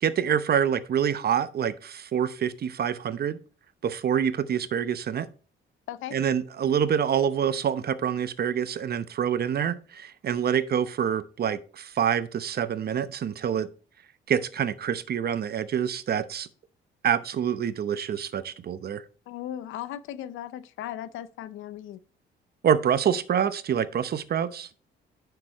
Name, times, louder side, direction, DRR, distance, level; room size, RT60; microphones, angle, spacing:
voice 1, 0.0-3.4 3.8-5.3 6.1-13.7 14.3-16.5 17.0-19.0 22.6-24.7, right 8 dB, 50° right, 0.8 m, -26 dB
voice 2, 19.3-22.0, left 11 dB, 85° left, 0.6 m, -37 dB
9.6 x 6.8 x 3.0 m
cardioid pair, 90°, 20 cm